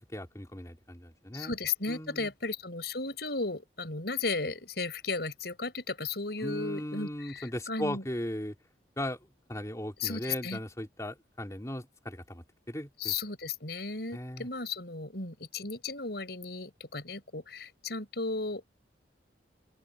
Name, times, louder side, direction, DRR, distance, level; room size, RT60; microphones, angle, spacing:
voice 1, 0.0-1.5 1.9-2.3 6.4-8.6 9.0-13.1 14.1-14.5, left 1 dB, 15° left, 3.3 m, -38 dB
voice 2, 1.3-8.0 10.0-10.6 13.0-18.6, left 3 dB, 60° left, 6.5 m, -35 dB
open air
head